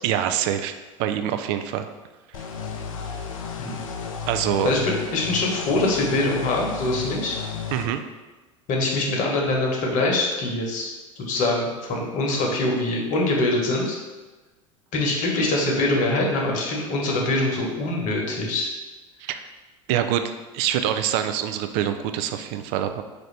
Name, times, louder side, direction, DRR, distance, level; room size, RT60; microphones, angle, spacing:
voice 1, 0.0-0.7 1.0-1.9 4.3-4.7 7.7-8.0 19.2-19.4 19.9-23.0, right 10 dB, 55° right, 8 dB, 0.4 m, -25 dB
sound 1, 2.3-7.9, left 6 dB, 80° left, 0.4 m, -33 dB
voice 2, 4.6-7.4 8.7-10.9 11.2-14.0 14.9-18.7, left 2 dB, 50° left, 0 dB, 1.0 m, -24 dB
4.4 x 2.5 x 3.2 m, 1.2 s
hypercardioid pair, 80°, 17 cm